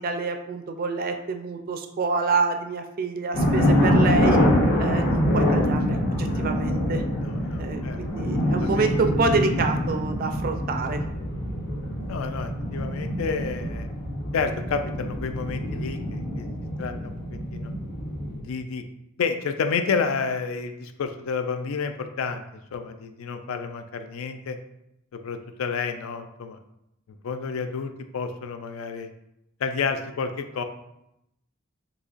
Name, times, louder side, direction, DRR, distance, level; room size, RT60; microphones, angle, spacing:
voice 1, 0.0-4.4 4.8-7.0 7.6-11.0, right 4 dB, 45° right, 6 dB, 0.4 m, -27 dB
sound 1, 3.3-18.4, equal, 55° left, 0.7 m, -25 dB
voice 2, 7.2-8.0 8.4-8.9 12.1-13.9 14.3-16.5 16.8-17.7 18.4-18.8 19.2-22.4 22.7-24.6 25.2-26.6 27.2-29.1 29.6-30.6, left 5 dB, 75° left, 8 dB, 0.4 m, -30 dB
4.0 x 2.8 x 2.4 m, 0.82 s
head